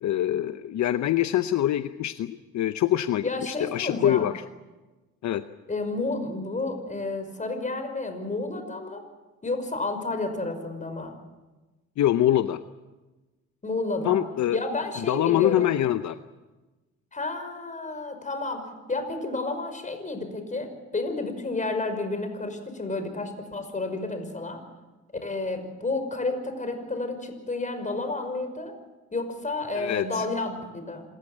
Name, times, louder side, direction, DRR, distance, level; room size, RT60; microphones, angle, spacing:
voice 1, 0.0-4.3 5.2-5.4 12.0-12.6 14.0-14.6 15.0-16.2 29.7-30.3, left 12 dB, 65° left, 11 dB, 0.8 m, -24 dB
voice 2, 3.2-4.2 5.7-9.0 9.4-11.2 13.6-14.2 14.5-15.8 17.1-24.6 25.2-28.8 29.1-31.0, left 3 dB, 25° left, 7 dB, 5.5 m, -31 dB
27.5 x 15.0 x 8.7 m, 1.2 s
cardioid pair, 90°, 30 cm